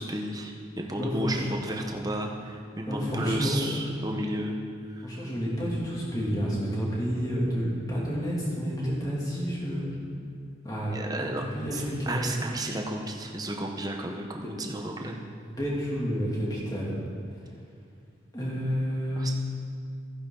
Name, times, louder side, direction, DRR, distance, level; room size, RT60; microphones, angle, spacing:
voice 1, 0.0-4.6 4.9-5.3 10.9-11.4 11.7-15.2 19.2-19.3, right 1 dB, 20° right, 2 dB, 0.9 m, -33 dB
voice 2, 1.0-1.4 2.9-3.6 5.0-9.8 10.6-11.3 11.5-12.2 14.4-14.5 15.5-17.0 18.3-19.2, equal, 20° left, -6 dB, 2.6 m, -30 dB
15.0 x 10.0 x 3.9 m, 2.3 s
head